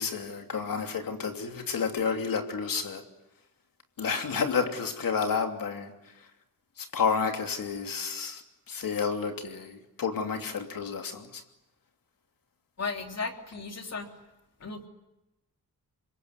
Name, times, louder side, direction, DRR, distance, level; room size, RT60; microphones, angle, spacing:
voice 1, 0.0-3.0 4.0-5.9 6.2-6.3 6.8-11.4, left 5 dB, 65° left, 2.9 m, -30 dB
voice 2, 12.8-14.1 14.6-14.9, left 4 dB, 45° left, 3.3 m, -35 dB
27.0 x 22.5 x 9.6 m
wide cardioid pair, 160°, 36 cm